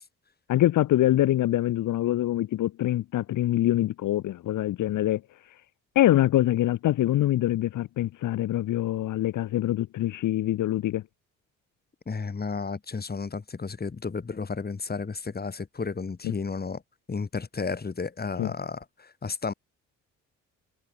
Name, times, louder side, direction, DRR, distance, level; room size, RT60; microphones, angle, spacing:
voice 1, 0.5-5.2 5.9-11.0 16.2-16.3 18.4-18.5, left 14 dB, 80° left, 2.9 m, -24 dB
voice 2, 12.1-16.8 17.1-19.5, left 4 dB, 30° left, 7.7 m, -33 dB
cardioid pair, 90°, 30 cm